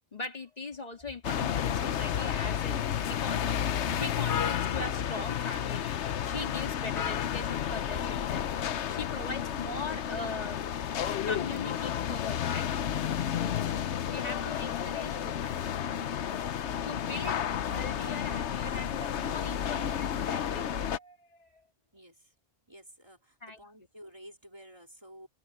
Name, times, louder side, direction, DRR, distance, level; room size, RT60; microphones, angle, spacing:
voice 1, 0.1-8.4 8.9-10.9 11.3-12.7 13.2-13.7 14.1-15.6 16.9-17.5 17.7-21.6 23.4-23.6, left 3 dB, 35° left, 2.2 m, -41 dB
sound 1, 1.2-21.0, left 9 dB, 90° left, 1.1 m, -31 dB
voice 2, 21.9-22.3 22.7-25.3, equal, 25° right, 3.1 m, -52 dB
open air
omnidirectional pair, 1.1 m